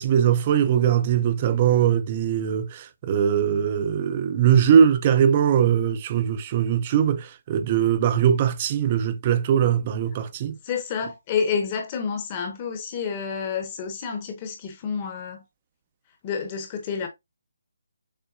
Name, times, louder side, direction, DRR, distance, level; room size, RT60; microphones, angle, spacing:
voice 1, 0.0-10.6, right 8 dB, 25° right, 0.4 m, -21 dB
voice 2, 10.6-15.4 16.2-17.1, left 6 dB, 25° left, 0.8 m, -29 dB
6.5 x 2.2 x 2.4 m
hypercardioid pair, 165°, 0 cm